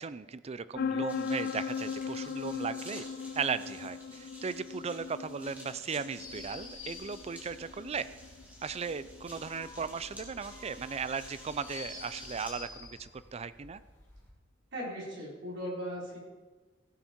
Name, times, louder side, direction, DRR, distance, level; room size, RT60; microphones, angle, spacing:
voice 1, 0.0-3.0 3.4-8.1 8.6-13.8, right 5 dB, 35° right, 15 dB, 0.4 m, -37 dB
sound 1, 0.7-12.3, left 6 dB, 50° left, 0.3 m, -40 dB
sound 2, 1.1-12.5, equal, 10° right, 2.4 m, -52 dB
sound 3, 6.2-14.3, left 3 dB, 15° left, 3.2 m, -50 dB
voice 2, 14.7-16.2, equal, 65° right, -4 dB, 4.2 m, -38 dB
16.5 x 7.2 x 4.4 m, 1.3 s
head